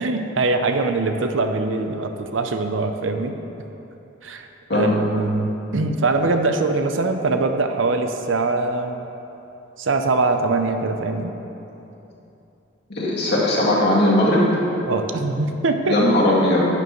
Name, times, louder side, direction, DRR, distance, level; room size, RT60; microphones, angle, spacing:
voice 1, 0.0-3.3 4.2-4.5 4.7-9.1 9.8-11.3 14.9-16.0, right 3 dB, 80° right, 6 dB, 0.7 m, -22 dB
voice 2, 12.9-14.5 15.9-16.6, left 1 dB, 60° left, -6 dB, 2.1 m, -18 dB
11.0 x 9.2 x 3.2 m, 2.9 s
head